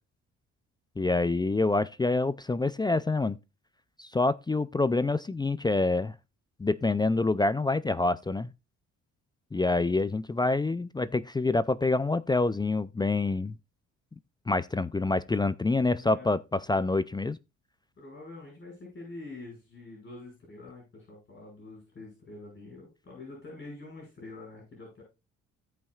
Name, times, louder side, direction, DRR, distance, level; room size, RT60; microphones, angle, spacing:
voice 1, 1.0-3.4 4.0-6.2 6.6-8.5 9.5-13.6 14.5-17.4, left 3 dB, 15° left, 0.4 m, -26 dB
voice 2, 16.0-16.3 18.0-25.0, left 2 dB, 40° left, 5.9 m, -46 dB
16.5 x 5.6 x 2.4 m
cardioid pair, 90°, 30 cm